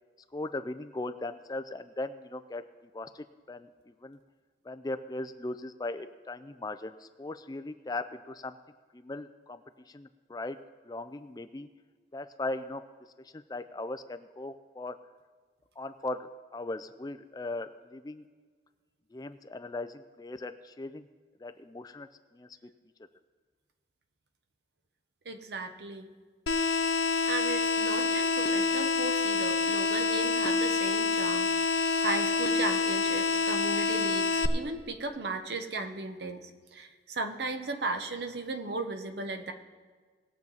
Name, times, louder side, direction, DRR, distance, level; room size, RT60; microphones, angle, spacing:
voice 1, 0.3-2.6 2.9-4.2 4.6-8.6 8.9-10.6 10.8-11.7 12.1-12.8 13.2-15.0 15.8-18.3 19.1-21.1 21.4-22.1 22.3-22.5, left 2 dB, 20° left, 11 dB, 0.4 m, -38 dB
voice 2, 25.2-26.1 27.2-39.5, right 2 dB, 70° right, 7 dB, 0.9 m, -36 dB
sound 1, 26.5-34.5, left 4 dB, 75° left, 0.6 m, -27 dB
19.5 x 7.2 x 4.0 m, 1.5 s
head